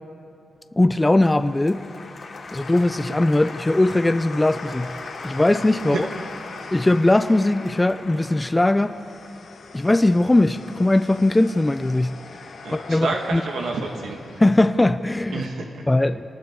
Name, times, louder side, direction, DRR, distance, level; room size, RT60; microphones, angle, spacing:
voice 1, 0.8-1.8 2.5-4.9 5.2-6.1 6.7-9.0 9.7-12.2 12.9-13.4 14.4-15.4 15.9-16.2, left 2 dB, 15° left, 9 dB, 0.5 m, -19 dB
sound 1, 0.9-15.2, left 4 dB, 75° left, 2.3 m, -44 dB
Applause, 1.2-10.3, left 3 dB, 50° left, 2.8 m, -40 dB
voice 2, 12.6-14.2 15.3-15.8, right 3 dB, 90° right, 0 dB, 2.1 m, -28 dB
28.5 x 20.0 x 4.7 m, 2.7 s
cardioid pair, 100°, 0 cm